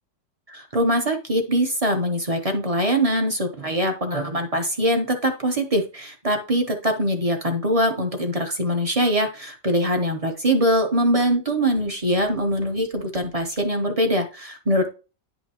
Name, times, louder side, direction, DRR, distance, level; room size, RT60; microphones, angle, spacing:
voice 1, 0.5-14.9, equal, 30° right, 5 dB, 0.6 m, -23 dB
10.0 x 5.5 x 2.9 m, 0.33 s
omnidirectional pair, 1.9 m